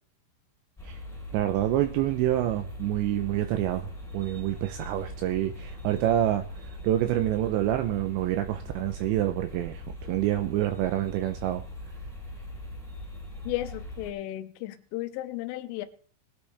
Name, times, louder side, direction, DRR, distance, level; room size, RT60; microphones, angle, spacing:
sound 1, 0.8-14.1, left 1 dB, ahead, 3.1 m, -41 dB
voice 1, 1.3-6.4 6.8-11.6, right 13 dB, 80° right, 2.7 m, -27 dB
voice 2, 13.4-15.9, left 16 dB, 80° left, 3.4 m, -34 dB
20.5 x 10.5 x 3.4 m
omnidirectional pair, 5.7 m